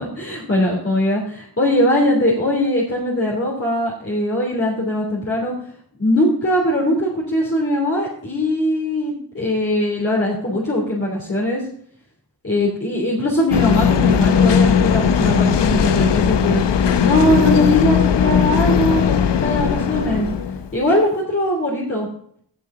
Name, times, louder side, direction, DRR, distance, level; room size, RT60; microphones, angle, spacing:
voice 1, 0.0-5.5 6.0-11.6 12.4-16.6 17.0-20.3 20.7-22.1, left 1 dB, 30° left, -4 dB, 3.2 m, -20 dB
sound 1, 13.5-20.8, left 7 dB, 80° left, 0.8 m, -17 dB
15.5 x 6.6 x 3.9 m, 0.64 s
wide cardioid pair, 70°, 42 cm